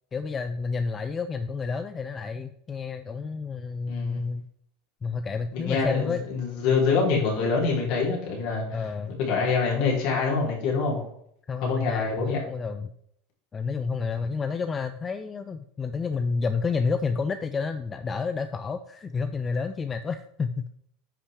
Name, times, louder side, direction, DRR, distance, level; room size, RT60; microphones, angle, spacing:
voice 1, 0.1-4.5 5.0-6.2 8.7-9.2 11.5-12.9 13.5-20.7, left 5 dB, 25° left, 10 dB, 0.5 m, -30 dB
voice 2, 3.9-4.3 5.5-11.0 11.6-12.4, left 4 dB, 60° left, -3 dB, 3.7 m, -25 dB
10.0 x 5.7 x 3.5 m, 0.72 s
hypercardioid pair, 95°, 0 cm